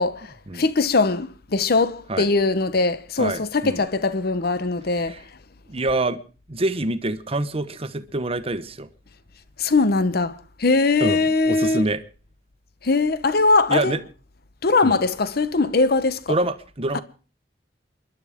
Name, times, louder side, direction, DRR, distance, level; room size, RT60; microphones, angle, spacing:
voice 1, 0.0-5.2 9.6-11.9 12.8-14.0 14.6-16.3, left 3 dB, 60° left, 0.9 m, -21 dB
voice 2, 3.2-3.8 5.1-5.2 5.7-6.2 6.5-8.9 11.0-11.2 11.5-12.0 13.7-14.0 14.8-14.9 16.3-17.0, right 2 dB, 35° right, 1.0 m, -26 dB
29.0 x 11.5 x 3.6 m
head